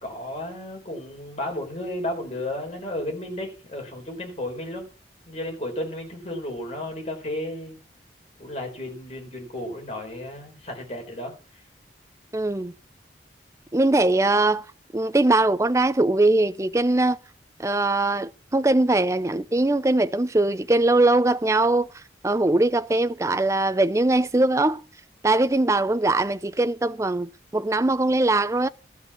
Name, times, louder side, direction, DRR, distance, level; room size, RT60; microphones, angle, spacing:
voice 1, 0.0-4.8 5.3-7.8 8.4-11.3, left 1 dB, 35° left, 4.1 m, -33 dB
voice 2, 12.3-12.7 13.7-14.6 14.9-17.2 17.6-21.9 22.2-24.8 25.2-28.7, right 2 dB, 15° right, 0.5 m, -21 dB
12.5 x 6.5 x 7.1 m
head